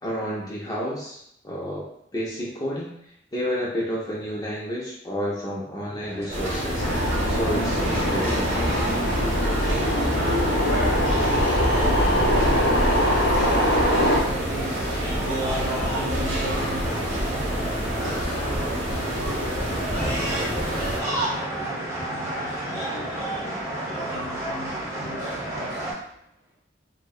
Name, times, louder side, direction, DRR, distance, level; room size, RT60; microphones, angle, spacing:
voice 1, 0.0-1.9 2.1-2.9 3.3-6.9 7.3-8.5, equal, 20° left, -5 dB, 0.4 m, -30 dB
sound 1, 6.0-25.9, right 1 dB, 15° right, 0.7 m, -32 dB
sound 2, 6.3-21.0, equal, 80° right, 0.8 m, -28 dB
sound 3, 6.8-14.2, equal, 80° left, 0.5 m, -23 dB
voice 2, 10.8-26.0, right 1 dB, 50° right, -9 dB, 1.4 m, -37 dB
2.6 x 2.1 x 2.3 m, 0.75 s
head